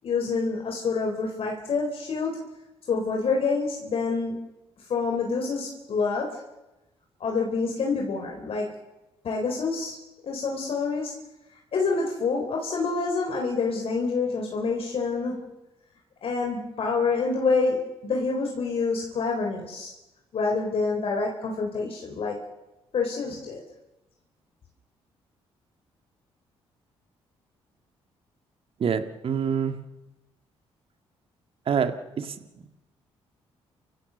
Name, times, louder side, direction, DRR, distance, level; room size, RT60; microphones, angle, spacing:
voice 1, 0.0-2.4 2.9-4.4 4.9-6.4 7.2-8.7 9.2-10.0 10.2-11.1 11.7-15.4 16.2-19.9 20.3-22.4 22.9-23.6, left 4 dB, 60° left, 1 dB, 3.7 m, -27 dB
voice 2, 28.8-29.8 31.7-32.3, right 7 dB, 55° right, 8 dB, 1.9 m, -26 dB
29.0 x 16.0 x 6.8 m, 1.0 s
supercardioid pair, 70°, 11 cm